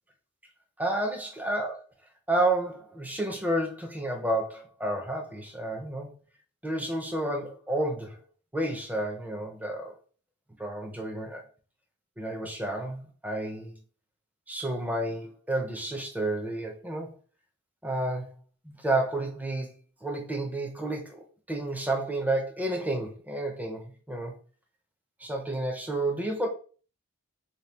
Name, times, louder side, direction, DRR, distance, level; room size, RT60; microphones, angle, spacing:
voice 1, 0.8-1.8 2.3-6.1 6.6-8.2 8.5-9.9 10.6-11.4 12.2-13.8 14.5-17.1 17.8-18.3 18.6-19.7 20.0-24.4 25.2-26.5, right 1 dB, 5° right, 0.6 m, -30 dB
4.2 x 2.2 x 3.3 m
head